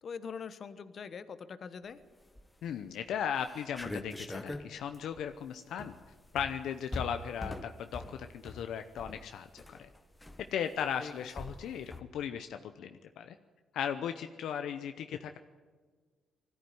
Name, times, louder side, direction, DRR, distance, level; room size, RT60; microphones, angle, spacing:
voice 1, 0.0-2.0 11.0-11.5, left 6 dB, 50° left, 12 dB, 1.2 m, -43 dB
sound 1, 2.2-2.7 3.1-3.2 3.4-12.0, left 2 dB, 10° left, 1.4 m, -44 dB
voice 2, 2.6-5.9 6.3-9.9 10.5-13.3 13.7-15.4, left 8 dB, 75° left, 8 dB, 0.8 m, -37 dB
20.5 x 14.0 x 9.4 m, 1.5 s
cardioid pair, 90°, 0 cm